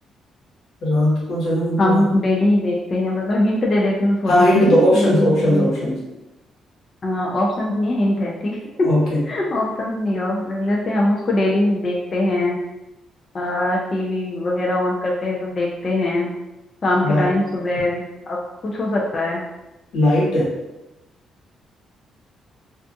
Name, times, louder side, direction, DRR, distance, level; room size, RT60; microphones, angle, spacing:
voice 1, 0.8-2.0 4.3-6.0 8.8-9.2 17.0-17.2 19.9-20.5, equal, 80° left, -5 dB, 1.0 m, -18 dB
voice 2, 1.8-5.7 7.0-8.9 9.3-12.6 13.3-16.3 16.8-19.4, left 1 dB, 40° left, -3 dB, 0.4 m, -21 dB
2.4 x 2.3 x 2.5 m, 0.99 s
cardioid pair, 90°, 0 cm